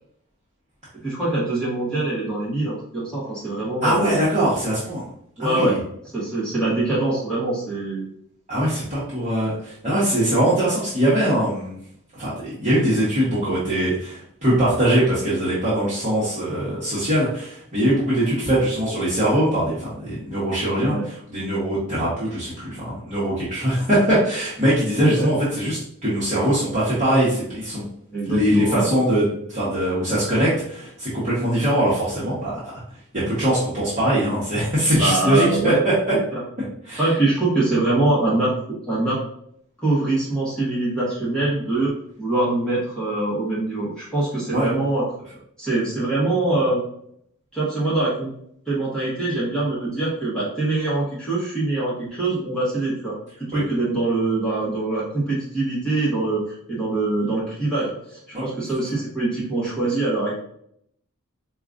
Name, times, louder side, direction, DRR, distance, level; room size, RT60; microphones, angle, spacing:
voice 1, 1.0-4.1 5.4-5.8 6.1-8.1 20.9-21.0 25.2-25.3 28.1-28.8 35.0-35.8 37.0-38.5 38.8-39.2 39.8-45.0 45.6-46.8 47.5-48.3 48.7-53.1 53.5-60.4, right 2 dB, 5° left, -8 dB, 1.1 m, -23 dB
voice 2, 3.8-5.0 5.4-5.8 8.5-11.8 12.1-27.8 28.3-32.6 33.1-35.7 36.8-37.0 44.5-44.7 53.5-53.6 58.3-58.5, right 1 dB, 30° right, -10 dB, 1.1 m, -22 dB
4.7 x 2.4 x 2.5 m, 0.68 s
head